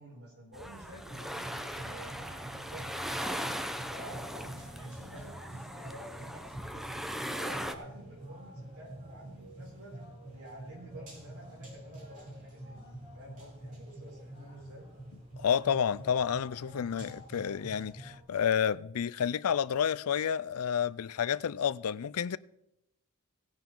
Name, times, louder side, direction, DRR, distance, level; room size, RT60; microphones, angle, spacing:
voice 1, 0.0-3.5 3.9-6.9 7.3-14.9, right 1 dB, 70° right, 6.5 m, -50 dB
sound 1, 0.5-7.7, equal, ahead, 0.7 m, -39 dB
sound 2, 1.1-18.2, right 1 dB, 35° right, 4.1 m, -47 dB
voice 2, 15.4-22.4, left 8 dB, 75° left, 0.4 m, -30 dB
17.5 x 10.5 x 3.8 m
head